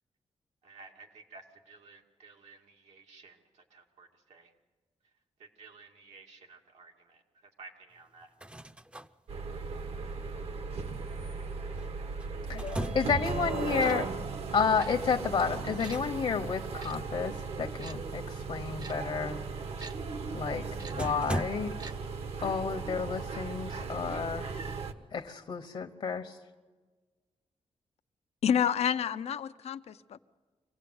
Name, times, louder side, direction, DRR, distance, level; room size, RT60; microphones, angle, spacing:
voice 1, 0.6-4.5 5.4-7.2 7.6-8.3, right 4 dB, 90° right, 2.5 m, -54 dB
sound 1, 8.2-9.1 11.8-13.3 15.4-16.1 16.4-16.6 20.4-20.5 21.0-21.5, right 1 dB, 10° right, 0.6 m, -38 dB
sound 2, 9.3-24.9, right 4 dB, 70° right, 1.3 m, -37 dB
voice 2, 12.5-14.1 14.5-19.4 20.3-21.8 22.4-24.5 25.1-26.4, left 6 dB, 60° left, 1.1 m, -31 dB
Tick-tock, 13.8-14.0 14.8-14.9 15.8-16.0 16.8-16.9 17.8-18.0 18.8-18.9 19.8-19.9 20.8-20.9 21.8-21.9 22.2-22.3, right 4 dB, 40° right, 0.8 m, -45 dB
voice 3, 28.4-30.2, left 8 dB, 75° left, 0.7 m, -29 dB
25.0 x 17.0 x 8.0 m
wide cardioid pair, 120°, 11 cm